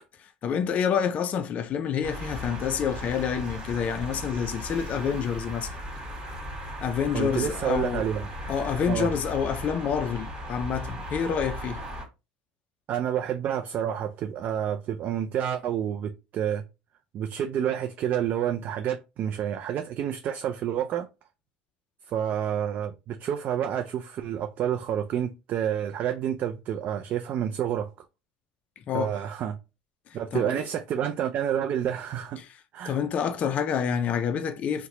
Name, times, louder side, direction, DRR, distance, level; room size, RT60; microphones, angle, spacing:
voice 1, 0.4-5.7 6.8-8.0 8.5-11.8 28.9-29.2 30.3-30.7 32.4-32.5 32.9-34.9, left 7 dB, 40° left, 0.4 m, -28 dB
sound 1, 2.0-12.1, equal, 25° right, 1.7 m, -37 dB
voice 2, 7.1-8.3 8.9-9.1 12.9-16.6 17.1-21.1 22.1-27.9 28.9-29.6 30.1-32.4 32.7-33.0, right 9 dB, 45° right, 0.4 m, -29 dB
2.9 x 2.1 x 3.9 m
supercardioid pair, 110°, 4 cm